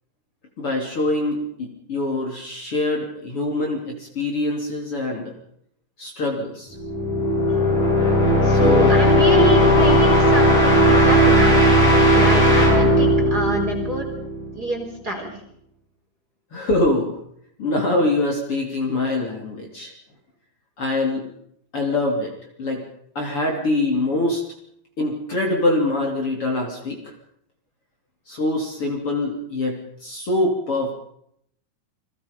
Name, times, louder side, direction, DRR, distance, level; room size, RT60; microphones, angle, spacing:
voice 1, 0.6-5.3 6.0-6.7 8.5-8.9 16.5-17.2 17.6-19.9 20.8-21.3 21.7-22.3 22.6-22.8 23.2-24.4 25.0-27.0 28.3-30.9, left 2 dB, 35° left, 1 dB, 3.6 m, -24 dB
sound 1, 6.8-14.5, equal, 55° left, 7.9 m, -16 dB
voice 2, 8.4-11.6 12.2-14.1 14.5-15.3, right 2 dB, 25° right, 1 dB, 4.1 m, -26 dB
29.5 x 22.0 x 5.3 m, 0.72 s
omnidirectional pair, 4.7 m